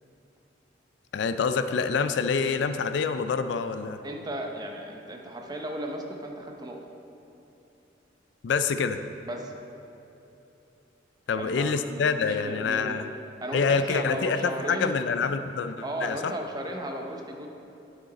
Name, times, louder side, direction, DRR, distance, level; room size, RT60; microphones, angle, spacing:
voice 1, 1.1-4.0 8.4-9.0 11.3-13.1 13.5-16.3, left 5 dB, 65° left, 10 dB, 0.3 m, -26 dB
voice 2, 4.0-6.9 9.2-9.5 11.3-13.1 13.4-14.9 15.8-17.5, right 1 dB, 20° right, 2 dB, 0.6 m, -35 dB
9.0 x 6.6 x 4.0 m, 3.0 s
head